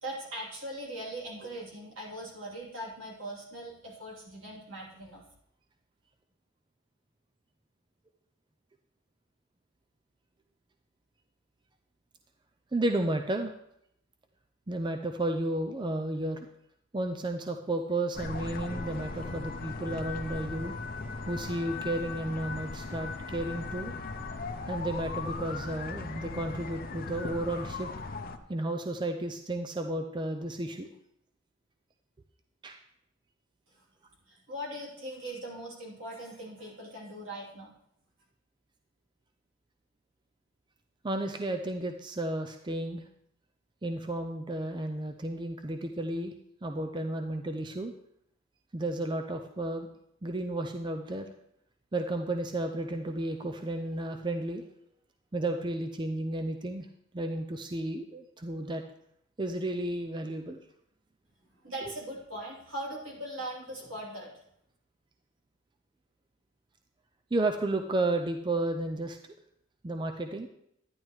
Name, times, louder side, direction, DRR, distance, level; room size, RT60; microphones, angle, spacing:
voice 1, 0.0-5.2 33.8-33.9 34.3-37.7 61.6-64.4, right 1 dB, 80° right, -4 dB, 3.2 m, -40 dB
voice 2, 12.7-13.5 14.7-16.5 16.9-20.8 21.3-23.9 24.7-27.9 28.5-30.9 32.6-32.8 41.0-43.0 43.8-46.3 46.6-47.9 48.7-49.9 50.2-51.3 51.9-54.6 55.3-56.9 57.1-58.8 59.4-60.6 67.3-69.2 69.8-70.5, right 1 dB, 25° right, 5 dB, 0.4 m, -32 dB
sound 1, 18.1-28.4, left 3 dB, 45° left, 0.6 m, -38 dB
10.5 x 10.5 x 3.2 m, 0.75 s
head